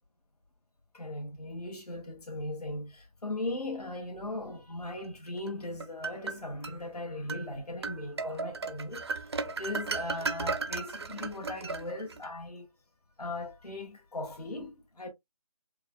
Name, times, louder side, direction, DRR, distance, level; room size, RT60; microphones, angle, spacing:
voice 1, 0.9-12.7 13.2-15.1, left 2 dB, 80° left, 1.5 m, -38 dB
sound 1, 5.5-6.8 7.3-7.5 7.8-12.3, right 4 dB, 45° right, 0.4 m, -35 dB
4.7 x 2.4 x 2.3 m
figure-of-eight pair, 160°, 20 cm